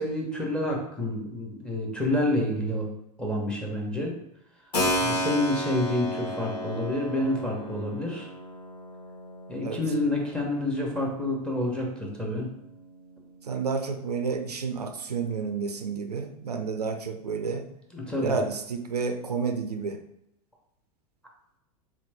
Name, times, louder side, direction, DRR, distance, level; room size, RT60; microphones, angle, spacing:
voice 1, 0.0-2.9 3.2-4.1 5.0-8.3 9.5-12.5 17.9-18.3, left 1 dB, 5° left, -1 dB, 1.0 m, -28 dB
Keyboard (musical), 4.7-13.3, equal, 85° left, 1.1 m, -33 dB
voice 2, 13.4-17.6 18.2-20.0, right 5 dB, 85° right, 7 dB, 0.4 m, -30 dB
3.6 x 3.1 x 3.3 m, 0.83 s
figure-of-eight pair, 90°, 20 cm